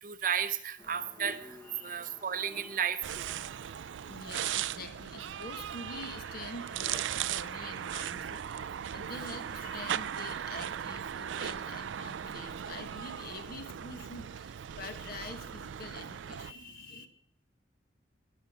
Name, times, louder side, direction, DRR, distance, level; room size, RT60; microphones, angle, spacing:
voice 1, 0.0-1.6 1.8-3.3, right 8 dB, 45° right, 12 dB, 0.7 m, -33 dB
sound 1, 0.8-6.8, left 1 dB, 15° left, 1.1 m, -54 dB
voice 2, 1.7-2.0 4.1-17.1, left 2 dB, 55° left, 7 dB, 1.6 m, -46 dB
sound 2, 3.0-16.5, right 9 dB, 80° right, 0.4 m, -38 dB
19.0 x 7.0 x 5.0 m, 0.75 s
head